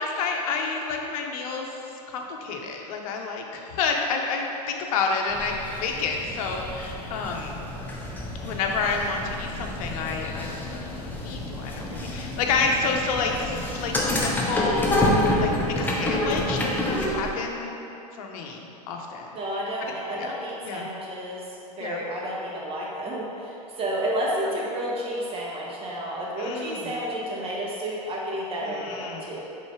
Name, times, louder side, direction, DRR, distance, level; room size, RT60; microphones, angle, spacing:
voice 1, 0.0-1.7 2.1-7.5 8.4-17.8 18.1-19.3 19.8-20.3 20.6-20.9 21.8-22.0 26.4-26.9 28.6-29.3, left 4 dB, 60° left, 1 dB, 0.8 m, -29 dB
sound 1, 5.3-17.3, left 1 dB, 10° left, 0.9 m, -28 dB
voice 2, 19.3-29.5, equal, 25° right, -5 dB, 1.4 m, -31 dB
5.3 x 4.0 x 4.6 m, 2.9 s
hypercardioid pair, 95°, 21 cm